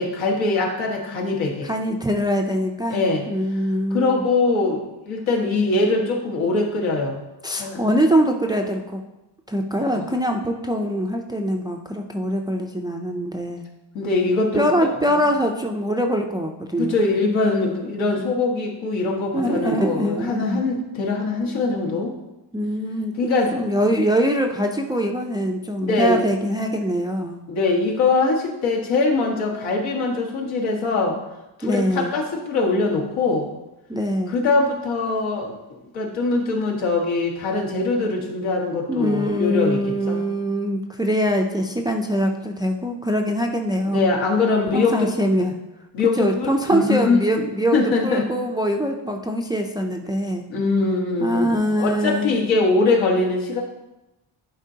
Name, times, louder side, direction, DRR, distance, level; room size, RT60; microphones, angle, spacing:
voice 1, 0.0-1.7 2.9-3.2 3.9-7.2 7.6-7.9 9.9-10.1 13.9-15.1 16.8-22.1 23.2-23.7 25.8-26.2 27.5-31.2 31.6-33.5 34.3-39.8 40.1-40.2 43.9-45.1 45.9-47.2 47.7-48.3 50.5-53.6, left 3 dB, 80° left, -1 dB, 1.7 m, -22 dB
voice 2, 1.6-4.2 7.4-9.0 9.5-13.6 14.5-17.0 19.3-20.6 22.5-23.1 23.5-27.4 31.6-32.1 33.9-34.3 38.9-44.1 44.7-45.5 46.2-50.4 51.2-52.4, equal, 10° right, 3 dB, 0.4 m, -23 dB
10.5 x 4.5 x 2.8 m, 0.98 s
cardioid pair, 115°, 47 cm